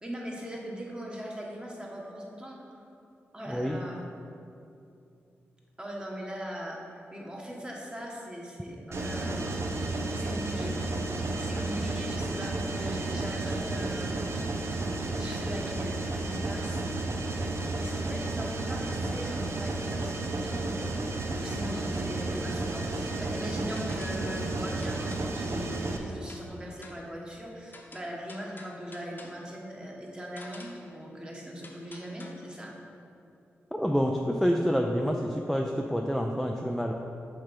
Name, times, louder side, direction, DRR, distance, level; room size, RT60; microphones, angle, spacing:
voice 1, 0.0-2.8 3.3-4.0 5.8-6.8 7.1-9.7 10.0-10.7 11.4-14.5 15.2-16.9 17.8-20.7 21.3-32.7, equal, 20° right, -2 dB, 1.4 m, -40 dB
Mechanisms, 8.9-26.0, right 2 dB, 60° right, 0.7 m, -32 dB
sound 1, 23.8-24.3 24.8-25.4 26.3-26.5 26.8-27.1 27.7-29.5 30.4-30.9 31.6-32.3, left 2 dB, 40° left, 0.9 m, -50 dB
voice 2, 33.7-36.9, equal, ahead, 2 dB, 0.5 m, -27 dB
6.4 x 3.4 x 5.8 m, 2.7 s
supercardioid pair, 45°, 5 cm